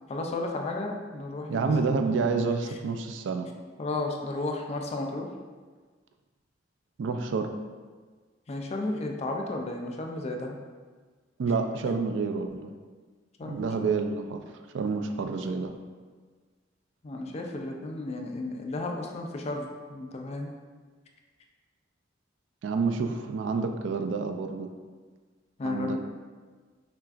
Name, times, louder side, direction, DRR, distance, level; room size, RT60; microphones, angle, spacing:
voice 1, 0.1-2.0 3.8-5.3 8.5-10.6 13.4-13.9 17.0-20.5 25.6-26.0, left 2 dB, 35° left, 2 dB, 0.4 m, -33 dB
voice 2, 1.5-3.5 7.0-7.5 11.4-12.7 13.4-14.4 14.7-15.8 22.6-24.7 25.6-26.0, right 4 dB, 70° right, 6 dB, 0.3 m, -28 dB
5.7 x 2.4 x 2.4 m, 1.4 s
head